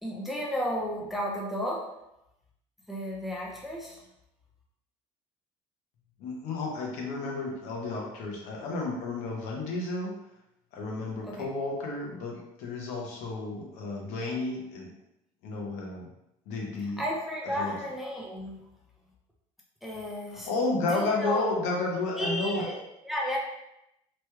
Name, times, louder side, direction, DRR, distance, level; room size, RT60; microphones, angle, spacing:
voice 1, 0.0-1.9 2.9-4.0 11.2-11.5 17.0-18.6 19.8-20.5 20.8-21.5 22.2-23.4, equal, ahead, -3 dB, 0.4 m, -33 dB
voice 2, 6.2-10.2 10.7-14.9 15.4-16.1 16.5-17.0 17.6-17.7 20.5-22.6, left 3 dB, 75° left, -1 dB, 0.8 m, -32 dB
3.0 x 2.3 x 3.1 m, 0.85 s
cardioid pair, 165°, 12 cm